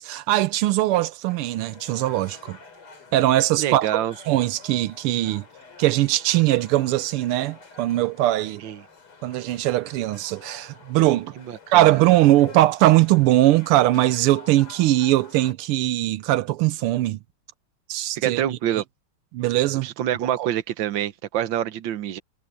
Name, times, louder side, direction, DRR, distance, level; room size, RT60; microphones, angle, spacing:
voice 1, 0.0-2.6 3.1-4.0 4.3-5.4 5.8-8.6 9.2-11.3 11.7-17.2 17.9-18.4 18.7-18.8 19.3-19.9 20.4-20.5, right 15 dB, 85° right, 1.6 m, -20 dB
sound 1, 1.3-15.5, left 4 dB, 90° left, 4.5 m, -48 dB
voice 2, 3.6-4.1 8.6-8.8 11.4-12.0 18.2-18.8 19.8-22.2, right 11 dB, 65° right, 1.6 m, -26 dB
omnidirectional pair, 2.4 m